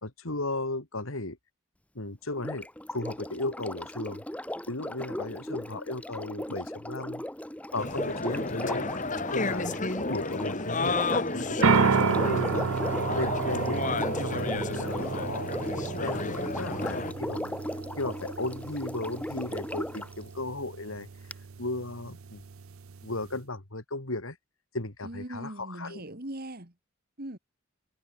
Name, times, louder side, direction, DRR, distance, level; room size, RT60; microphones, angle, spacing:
voice 1, 0.0-1.4 1.9-2.7 2.9-4.2 4.7-7.2 7.7-8.9 9.3-12.7 13.2-13.9 14.2-15.5 16.0-17.6 18.0-21.1 21.6-22.4 23.0-24.4 24.7-26.0, left 2 dB, 75° left, 2.8 m, -35 dB
Sink (filling or washing), 2.3-20.1 21.3-21.4, left 1 dB, 5° left, 1.8 m, -37 dB
sound 1, 7.8-17.1, left 3 dB, 35° left, 3.3 m, -32 dB
sound 2, 11.6-23.4, right 5 dB, 75° right, 0.6 m, -31 dB
voice 2, 25.0-26.7 27.2-27.4, right 1 dB, 45° right, 2.7 m, -40 dB
head